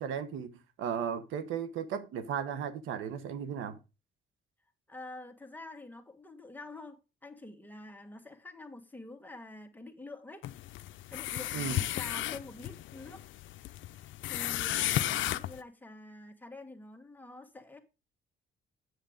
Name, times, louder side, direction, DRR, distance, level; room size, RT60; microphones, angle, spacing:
voice 1, 0.0-3.8 11.5-11.8, right 8 dB, 85° right, 1.1 m, -35 dB
voice 2, 4.9-10.5 11.1-13.2 14.0-17.8, left 2 dB, 10° left, 1.7 m, -47 dB
sound 1, 10.4-15.6, left 14 dB, 75° left, 0.5 m, -34 dB
8.0 x 7.6 x 5.1 m
cardioid pair, 90°, 20 cm